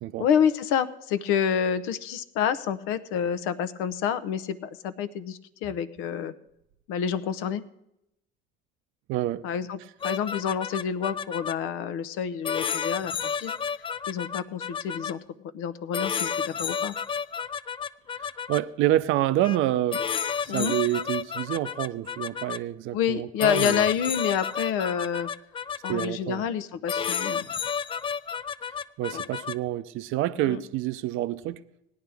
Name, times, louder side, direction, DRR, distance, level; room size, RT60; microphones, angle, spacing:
voice 1, 0.2-6.3 6.9-7.6 9.4-13.5 14.1-15.2 15.5-16.9 20.5-20.7 22.9-25.3 25.8-27.5 29.1-29.2 30.4-30.6, left 8 dB, 80° left, 0.7 m, -28 dB
voice 2, 9.1-9.4 18.2-20.0 20.4-23.9 25.9-26.4 29.0-31.6, right 14 dB, 70° right, 0.6 m, -27 dB
cool beeeeeeeeps, 10.0-11.5 12.4-15.1 15.9-18.6 19.4-19.6 19.9-22.6 23.4-26.1 26.9-29.5, left 7 dB, 25° left, 0.4 m, -31 dB
18.0 x 10.5 x 3.4 m
supercardioid pair, 90°, 21 cm